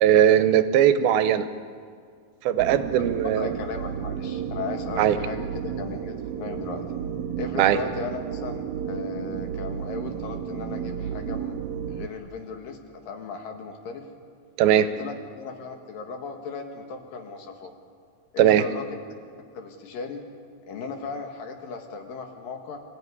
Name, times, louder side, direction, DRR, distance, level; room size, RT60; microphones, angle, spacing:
voice 1, 0.0-1.5 2.5-3.5 5.0-5.2 7.6-7.8 14.6-14.9 18.4-18.6, right 10 dB, 90° right, 11 dB, 2.7 m, -19 dB
sound 1, 2.6-12.1, right 8 dB, 70° right, 1.7 m, -32 dB
voice 2, 2.7-6.9 7.4-11.6 11.9-14.1 14.7-17.7 18.3-18.9 19.6-20.3 20.7-22.8, left 4 dB, 70° left, 4 dB, 3.4 m, -36 dB
25.5 x 14.5 x 9.9 m, 2.1 s
omnidirectional pair, 4.2 m